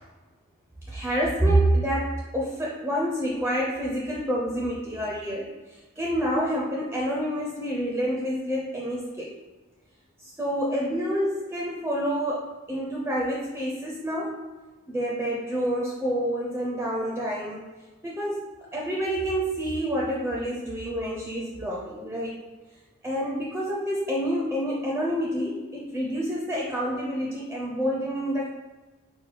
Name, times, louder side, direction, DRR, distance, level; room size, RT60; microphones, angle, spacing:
voice 1, 0.9-9.4 10.2-14.4 14.9-17.6 18.0-22.4 23.0-28.5, equal, 10° right, -4 dB, 0.5 m, -28 dB
4.8 x 2.2 x 4.5 m, 1.3 s
head